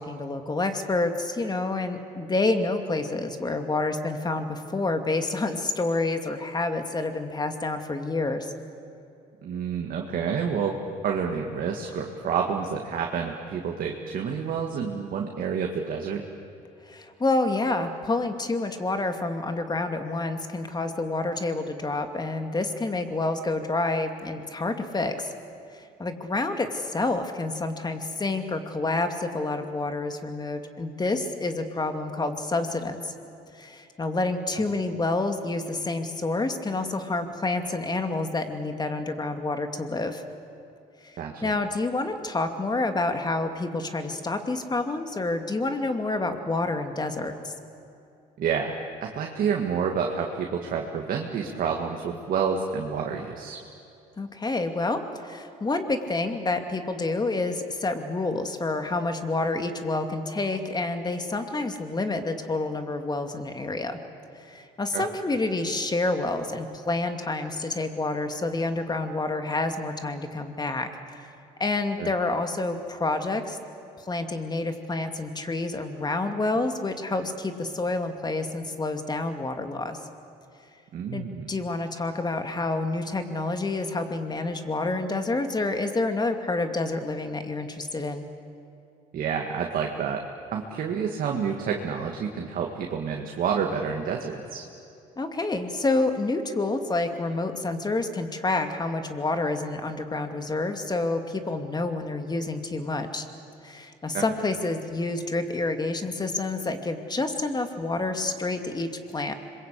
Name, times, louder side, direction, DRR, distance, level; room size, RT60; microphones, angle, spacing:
voice 1, 0.0-8.5 16.8-25.3 25.7-33.1 33.5-40.2 41.0-47.5 54.2-64.0 64.4-71.2 71.6-73.6 74.0-80.0 81.1-88.3 95.2-103.2 103.6-109.3, left 2 dB, 25° left, 6 dB, 2.5 m, -28 dB
voice 2, 9.4-10.8 11.0-16.2 34.5-34.6 41.2-41.5 48.4-48.7 49.0-53.6 64.9-65.0 72.0-72.1 80.9-81.5 89.1-90.2 90.5-94.6 104.1-104.2, right 6 dB, 60° right, 1 dB, 2.1 m, -29 dB
26.0 x 22.5 x 8.4 m, 2.7 s
supercardioid pair, 70°, 16 cm